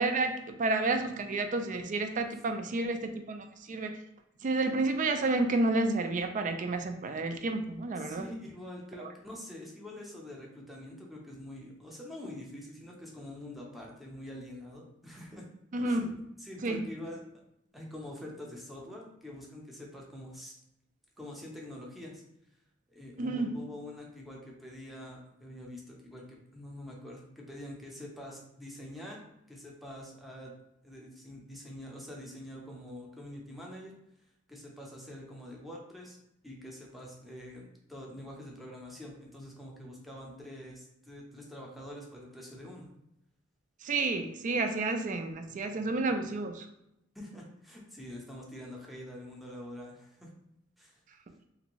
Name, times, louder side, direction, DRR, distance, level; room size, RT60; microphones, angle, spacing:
voice 1, 0.0-3.9 4.4-8.3 15.7-16.1 16.6-16.9 23.2-23.5 43.8-46.7, right 2 dB, 40° right, 7 dB, 0.4 m, -30 dB
voice 2, 8.0-15.5 15.9-16.1 16.4-17.2 17.7-20.5 21.2-22.2 22.9-29.2 29.5-30.5 30.8-33.9 34.5-36.2 36.4-42.9 47.1-50.3 50.8-51.0, left 1 dB, ahead, -2 dB, 0.6 m, -45 dB
3.2 x 2.6 x 3.0 m, 0.84 s
head